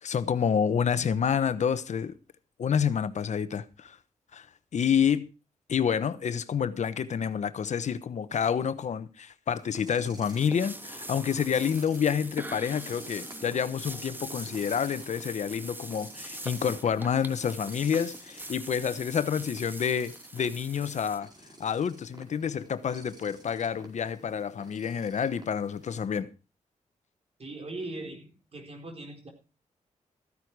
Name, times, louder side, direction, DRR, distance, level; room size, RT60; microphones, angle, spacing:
voice 1, 0.0-2.1 2.6-4.0 4.3-4.5 4.7-5.3 5.7-21.3 21.6-26.3, left 7 dB, 65° left, 1.0 m, -28 dB
sound 1, 9.5-26.1, right 1 dB, 30° right, 4.6 m, -53 dB
sound 2, 10.2-21.2, right 1 dB, 15° right, 1.4 m, -42 dB
voice 2, 27.4-29.3, right 2 dB, 50° right, 4.3 m, -40 dB
14.5 x 9.8 x 4.7 m
cardioid pair, 70°, 13 cm